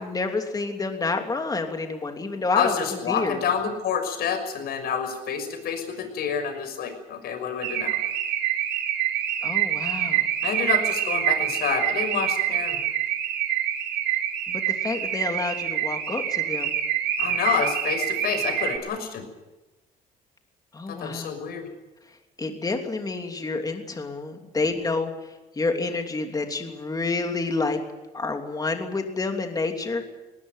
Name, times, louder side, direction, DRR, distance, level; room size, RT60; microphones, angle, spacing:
voice 1, 0.0-3.4 9.4-10.3 14.5-16.8 20.7-21.4 22.4-27.8 28.1-30.1, left 3 dB, 20° left, 4 dB, 3.0 m, -29 dB
voice 2, 2.5-8.0 10.4-12.8 17.2-19.3 21.0-21.6, left 7 dB, 65° left, 7 dB, 6.2 m, -28 dB
Car / Alarm, 7.6-18.8, right 10 dB, 90° right, 2.8 m, -26 dB
19.0 x 19.0 x 9.3 m, 1.1 s
cardioid pair, 110°, 17 cm